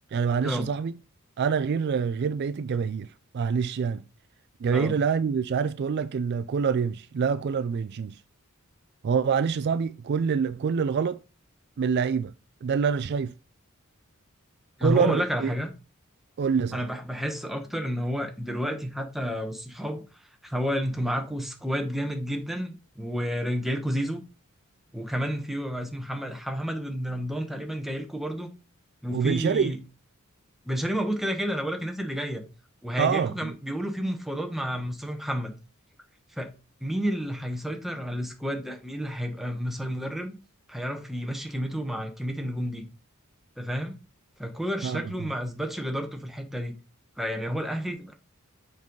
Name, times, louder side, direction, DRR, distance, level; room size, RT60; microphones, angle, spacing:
voice 1, 0.1-0.9 1.4-4.0 4.6-8.2 9.0-11.2 11.8-12.3 12.6-13.3 14.8-15.5 16.4-16.9 29.1-29.8 33.0-33.6 44.8-45.0, right 6 dB, 50° right, 0.3 m, -26 dB
voice 2, 14.8-15.7 16.7-20.0 20.4-24.2 24.9-28.5 29.0-29.8 30.6-32.4 32.8-35.5 36.3-36.5 36.8-40.3 40.7-42.8 43.6-44.0 44.4-46.7 47.2-48.1, equal, ahead, 1.1 m, -30 dB
7.4 x 5.4 x 3.8 m
head